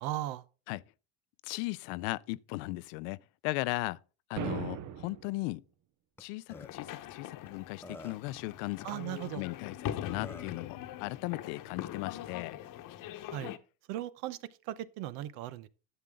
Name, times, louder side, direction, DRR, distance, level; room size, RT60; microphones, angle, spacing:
voice 1, 0.0-0.4 8.8-9.4 13.3-13.5 13.9-14.4 14.7-15.7, right 14 dB, 80° right, 0.9 m, -37 dB
voice 2, 1.4-4.0 4.3-5.6 6.2-8.9 9.3-12.6, left 21 dB, 85° left, 0.6 m, -37 dB
sound 1, 4.4-5.4, right 9 dB, 55° right, 1.0 m, -37 dB
Burping eructation, 6.2-6.3 6.5-6.7 7.5-7.6 7.8-8.3 9.7-9.8 10.2-10.6, left 2 dB, 5° left, 0.4 m, -47 dB
sound 2, 6.5-13.6, left 11 dB, 55° left, 1.0 m, -42 dB
11.0 x 8.1 x 3.6 m
cardioid pair, 115°, 38 cm